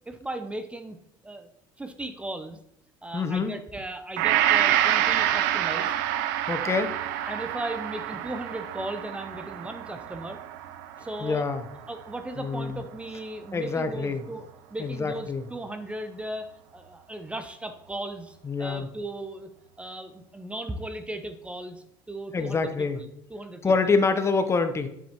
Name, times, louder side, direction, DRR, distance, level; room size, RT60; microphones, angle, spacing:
voice 1, 0.1-1.0 1.2-1.5 1.8-2.6 3.0-5.9 7.3-10.4 11.0-11.4 11.9-19.5 19.8-23.7, right 1 dB, 10° right, 8 dB, 0.6 m, -37 dB
voice 2, 3.1-3.5 6.5-6.9 11.2-11.6 12.4-12.8 13.5-14.2 14.8-15.4 18.4-18.9 22.3-23.0 23.6-24.9, left 4 dB, 25° left, 9 dB, 0.8 m, -26 dB
Gong, 4.2-12.5 12.9-13.0, right 11 dB, 85° right, 0.5 m, -27 dB
7.1 x 7.1 x 2.9 m, 0.76 s
supercardioid pair, 90°, 10 cm